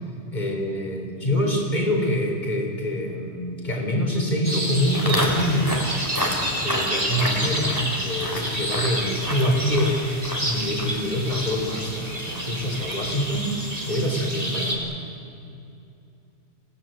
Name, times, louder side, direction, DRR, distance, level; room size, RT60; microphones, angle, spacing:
voice 1, 0.3-5.7 6.6-10.1 10.4-13.5 13.9-15.0, equal, 40° left, 1 dB, 4.5 m, -25 dB
sound 1, 4.4-14.8, right 1 dB, 35° right, 3.5 m, -29 dB
Walk footsteps, 4.9-14.2, equal, 20° left, 3.4 m, -32 dB
26.5 x 17.0 x 9.3 m, 2.7 s
omnidirectional pair, 1.2 m